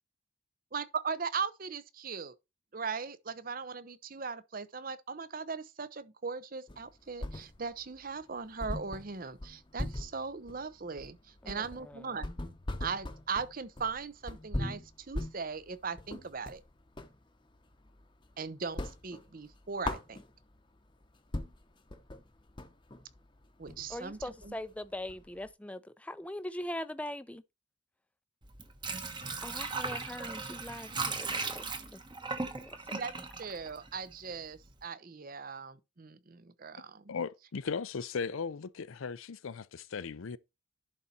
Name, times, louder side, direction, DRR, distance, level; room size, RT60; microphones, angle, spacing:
voice 1, 0.7-2.3 2.7-12.3 12.8-16.6 18.4-20.2 23.6-24.6 32.9-37.1, right 5 dB, 45° right, 0.7 m, -39 dB
sound 1, 6.7-7.9 8.2-8.3 8.6-17.2 17.6-18.3 18.6-20.6 21.0-21.1 21.3-25.5, left 1 dB, 25° left, 0.8 m, -40 dB
voice 2, 11.4-12.3 23.9-27.4 29.4-31.6 31.9-32.0 32.6-32.8, left 1 dB, 5° left, 0.5 m, -41 dB
Water / Sink (filling or washing), 28.4-34.3 34.7-34.8, right 4 dB, 25° right, 1.0 m, -37 dB
voice 3, 37.1-40.4, left 5 dB, 80° left, 0.5 m, -37 dB
11.0 x 4.2 x 4.2 m
head